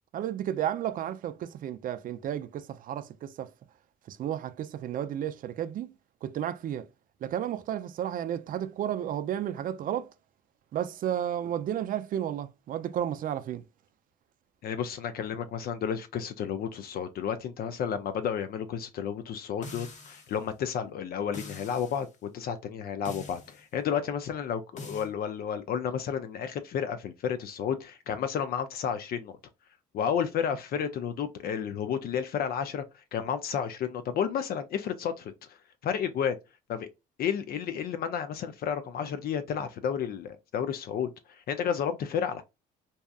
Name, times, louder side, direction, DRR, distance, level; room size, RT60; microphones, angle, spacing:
voice 1, 0.1-3.5 4.1-5.9 6.2-6.9 7.2-10.1 10.7-13.6, right 10 dB, 50° right, 0.4 m, -32 dB
voice 2, 14.6-29.4 29.9-35.6 35.8-36.4 36.7-36.9 37.2-42.4, left 8 dB, 55° left, 0.4 m, -32 dB
sound 1, 19.6-20.4 21.3-22.0 23.1-23.6 24.8-25.1, left 3 dB, 40° left, 0.8 m, -44 dB
2.7 x 2.3 x 2.3 m
supercardioid pair, 80°, 18 cm